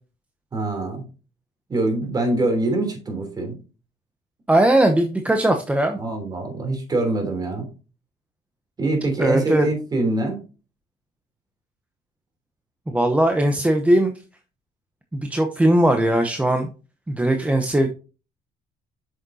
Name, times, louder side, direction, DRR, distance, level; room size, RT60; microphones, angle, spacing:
voice 1, 0.5-1.0 1.7-3.5 6.0-7.7 8.8-10.4, right 2 dB, 30° right, 4 dB, 3.2 m, -24 dB
voice 2, 4.5-6.0 9.2-9.7 12.9-14.1 15.1-16.7 17.1-17.9, right 1 dB, 10° right, 5 dB, 0.9 m, -19 dB
8.5 x 6.5 x 2.8 m, 0.33 s
cardioid pair, 105°, 14 cm